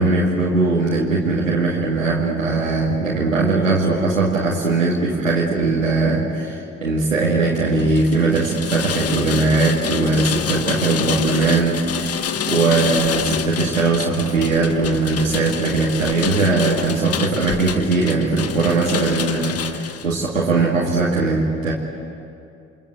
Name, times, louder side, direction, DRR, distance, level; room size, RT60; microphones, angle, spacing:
voice 1, 0.0-12.2 12.5-21.7, right 3 dB, 90° right, -5 dB, 2.4 m, -20 dB
Rain, 7.7-20.1, left 8 dB, 40° left, 1.3 m, -28 dB
28.0 x 25.0 x 8.0 m, 2.6 s
figure-of-eight pair, 50°, 38 cm